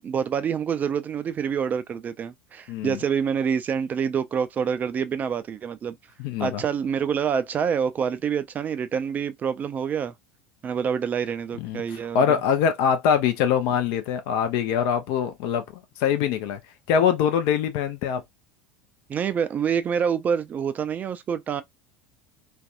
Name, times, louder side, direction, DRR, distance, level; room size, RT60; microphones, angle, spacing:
voice 1, 0.0-6.0 6.4-10.1 10.6-12.4 19.1-21.6, right 7 dB, 30° right, 0.3 m, -27 dB
voice 2, 2.7-3.0 6.2-6.6 11.6-11.8 12.1-16.6 16.9-18.2, left 8 dB, 55° left, 0.6 m, -23 dB
2.5 x 2.2 x 2.4 m
figure-of-eight pair, 75°, 6 cm